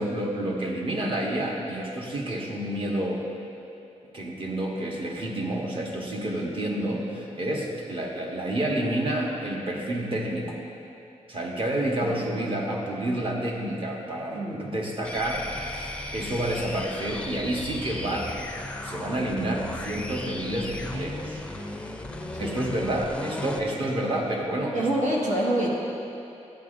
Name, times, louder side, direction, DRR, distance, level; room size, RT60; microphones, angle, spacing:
voice 1, 0.0-3.2 4.1-10.6 11.3-18.3 18.8-21.4 22.4-24.9, right 1 dB, 45° right, -2 dB, 1.2 m, -29 dB
voice 2, 14.3-14.7 22.3-22.6 24.7-25.7, right 1 dB, 85° right, -4 dB, 1.5 m, -26 dB
sound 1, 15.0-23.7, left 2 dB, 10° left, 0.4 m, -36 dB
11.5 x 8.7 x 2.6 m, 2.8 s
wide cardioid pair, 135°, 12 cm